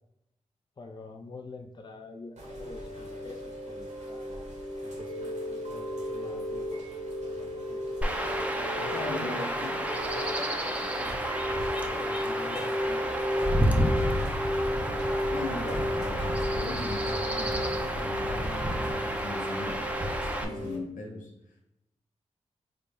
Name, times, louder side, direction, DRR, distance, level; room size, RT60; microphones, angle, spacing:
voice 1, 0.8-8.1 8.8-11.2 12.0-14.3, left 3 dB, 35° left, 4 dB, 0.4 m, -45 dB
Chime / Rain, 2.4-20.8, equal, 65° right, 0.9 m, -34 dB
Chirp tweet / Wind / Stream, 8.0-20.4, equal, 10° right, 0.5 m, -30 dB
voice 2, 8.9-9.7 15.3-19.8 20.4-21.3, left 2 dB, 85° left, 1 dB, 0.8 m, -39 dB
3.8 x 2.1 x 3.4 m, 0.84 s
supercardioid pair, 40°, 13 cm